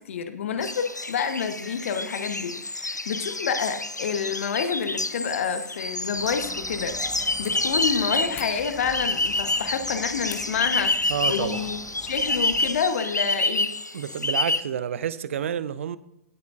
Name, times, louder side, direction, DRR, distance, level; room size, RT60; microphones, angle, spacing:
voice 1, 0.0-11.8 12.1-13.7, left 6 dB, 50° left, 1.2 m, -28 dB
sound 1, 0.6-14.6, left 2 dB, 90° left, 0.5 m, -28 dB
sound 2, 6.2-12.8, right 1 dB, 10° right, 1.6 m, -44 dB
sound 3, 8.3-8.6 10.2-10.5 11.0-11.6 12.0-12.2, left 7 dB, 20° left, 0.9 m, -39 dB
voice 2, 11.1-11.6 13.9-16.0, right 9 dB, 50° right, 0.6 m, -29 dB
17.5 x 8.1 x 2.6 m
figure-of-eight pair, 120°, 9 cm